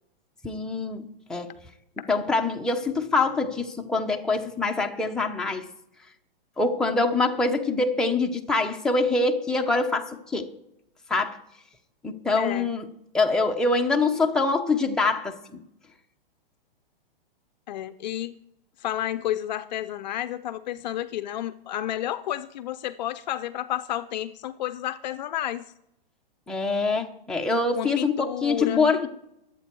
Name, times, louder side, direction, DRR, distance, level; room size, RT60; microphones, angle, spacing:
voice 1, 0.4-1.5 2.1-5.7 6.6-10.5 11.1-11.4 12.0-12.8 13.1-15.6 26.5-29.1, left 3 dB, ahead, 1 dB, 1.0 m, -24 dB
voice 2, 12.4-12.7 17.7-18.3 18.8-25.6 27.8-28.9, left 12 dB, 45° left, 13 dB, 0.6 m, -31 dB
22.0 x 8.4 x 4.6 m, 0.80 s
hypercardioid pair, 140°, 29 cm